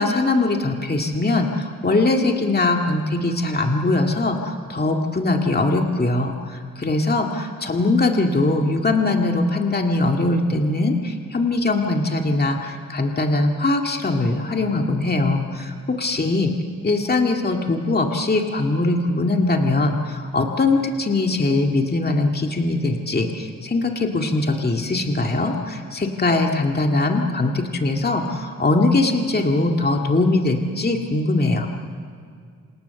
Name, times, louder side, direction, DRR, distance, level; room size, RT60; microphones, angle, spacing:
voice 1, 0.0-16.5 16.8-31.7, left 2 dB, 30° left, 2 dB, 2.1 m, -21 dB
27.5 x 27.5 x 7.0 m, 2.2 s
wide cardioid pair, 110°, 33 cm